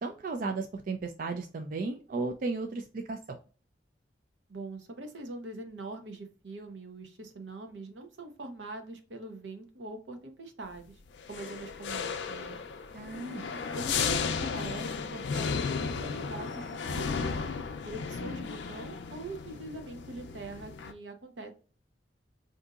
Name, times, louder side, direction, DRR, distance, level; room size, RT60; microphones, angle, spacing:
voice 1, 0.0-3.4 12.9-13.5, right 3 dB, 50° right, 4 dB, 0.3 m, -35 dB
voice 2, 4.5-10.9 11.3-12.6 13.7-17.4 17.8-21.5, right 2 dB, 80° right, 5 dB, 0.7 m, -43 dB
sound 1, 11.2-20.9, left 5 dB, 75° left, 0.4 m, -34 dB
3.8 x 2.6 x 2.4 m, 0.36 s
head